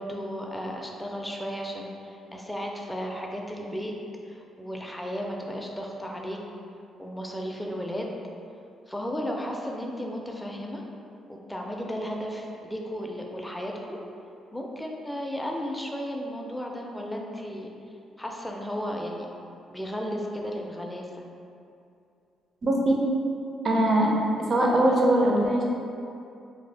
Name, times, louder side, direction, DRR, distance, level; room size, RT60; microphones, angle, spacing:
voice 1, 0.0-3.9 4.3-6.4 7.0-8.2 8.9-10.8 11.3-14.0 14.5-17.7 18.2-19.3 19.7-21.1, equal, 5° left, 0 dB, 0.4 m, -34 dB
voice 2, 22.6-23.0 23.6-24.1 24.5-25.6, right 1 dB, 45° right, -2 dB, 0.5 m, -21 dB
2.6 x 2.3 x 3.3 m, 2.6 s
cardioid pair, 90°, 0 cm